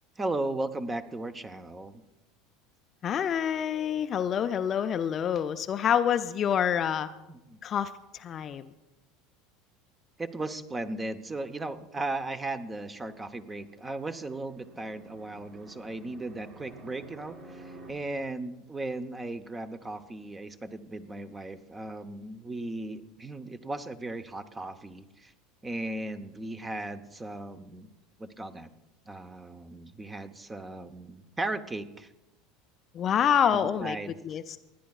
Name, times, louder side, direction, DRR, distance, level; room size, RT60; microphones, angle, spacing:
voice 1, 0.2-2.0 7.3-7.6 10.2-25.3 25.6-27.9 28.2-28.7 29.1-32.1 33.5-34.2, right 2 dB, 20° right, 10 dB, 0.9 m, -36 dB
voice 2, 3.0-7.1 7.6-8.7 32.9-34.0 34.2-34.6, left 8 dB, 35° left, 10 dB, 0.5 m, -27 dB
Fixed-wing aircraft airplane, 13.2-17.9, right 2 dB, 45° right, 4.7 m, -51 dB
28.5 x 10.0 x 2.4 m, 0.98 s
figure-of-eight pair, 75°, 0 cm